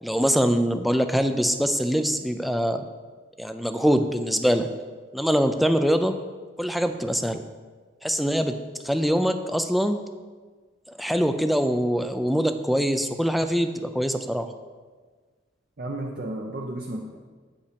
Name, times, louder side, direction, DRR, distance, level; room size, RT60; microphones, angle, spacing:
voice 1, 0.0-2.8 3.4-4.7 5.1-6.2 6.6-7.4 8.0-8.5 8.8-10.0 11.0-14.5, equal, ahead, 8 dB, 0.4 m, -23 dB
voice 2, 15.8-17.2, right 1 dB, 50° right, 0 dB, 0.7 m, -33 dB
8.2 x 5.3 x 5.1 m, 1.4 s
head